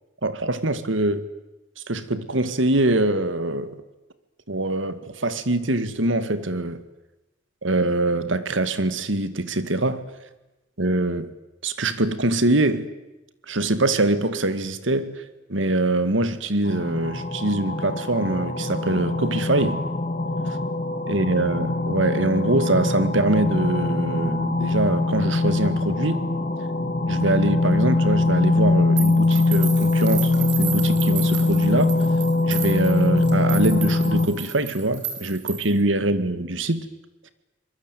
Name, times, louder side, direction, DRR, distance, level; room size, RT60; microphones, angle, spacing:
voice 1, 0.2-1.3 1.8-3.8 4.5-6.8 7.6-10.1 10.8-11.3 11.6-12.9 13.5-15.2 15.5-19.8 21.1-26.3 27.1-32.0 32.4-36.9, right 2 dB, 80° right, 2.0 m, -23 dB
sound 1, 16.7-34.3, left 2 dB, 45° left, 2.4 m, -22 dB
sound 2, 29.0-35.8, right 8 dB, 60° right, 5.1 m, -33 dB
25.0 x 22.0 x 9.3 m
head